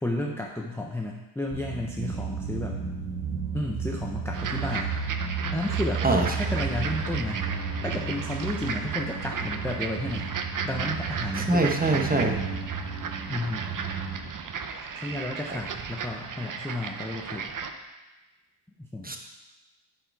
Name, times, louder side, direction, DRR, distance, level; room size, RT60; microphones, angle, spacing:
voice 1, 0.0-2.8 3.5-5.0 5.5-6.0 6.3-7.5 7.8-10.3 10.6-11.8 13.3-13.7 15.0-17.5 18.8-19.1, left 1 dB, 5° left, 0 dB, 0.5 m, -32 dB
sound 1, 1.5-14.2, right 5 dB, 75° right, 2.5 m, -33 dB
sound 2, 4.3-17.7, right 5 dB, 40° right, 0.6 m, -35 dB
voice 2, 11.5-12.4 19.0-19.2, right 2 dB, 20° right, 2 dB, 0.9 m, -23 dB
10.0 x 4.6 x 4.6 m, 1.1 s
wide cardioid pair, 125°, 50 cm